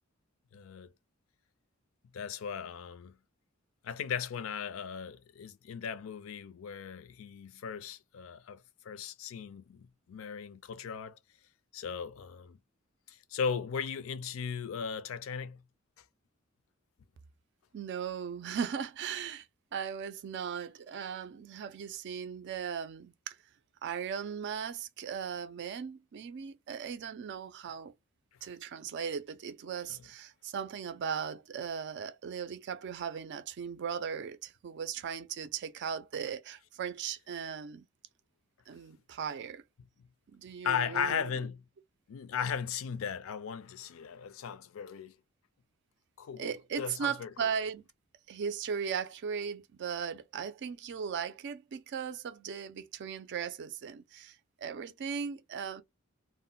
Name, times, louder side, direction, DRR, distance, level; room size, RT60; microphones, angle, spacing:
voice 1, 0.5-0.9 2.1-3.2 3.8-11.2 11.7-12.6 13.1-15.6 29.9-30.0 40.6-41.6 42.1-45.2 46.2-47.5, left 7 dB, 70° left, 0.4 m, -37 dB
voice 2, 17.7-19.5 19.7-23.4 23.8-27.9 28.4-37.9 38.7-39.6 40.3-41.3 46.4-47.8 48.3-55.8, right 7 dB, 55° right, 0.4 m, -37 dB
2.1 x 2.1 x 3.7 m
head